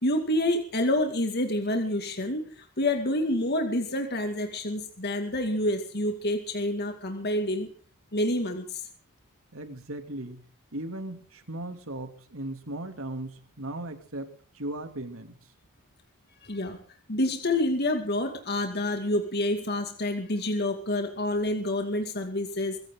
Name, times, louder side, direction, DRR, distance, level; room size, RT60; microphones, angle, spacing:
voice 1, 0.0-7.7 8.1-8.8 16.4-16.8 17.1-22.8, left 1 dB, 50° left, 4 dB, 2.4 m, -28 dB
voice 2, 9.5-10.4 10.7-15.4, right 1 dB, 65° right, 7 dB, 3.0 m, -37 dB
23.0 x 16.0 x 4.0 m, 0.41 s
head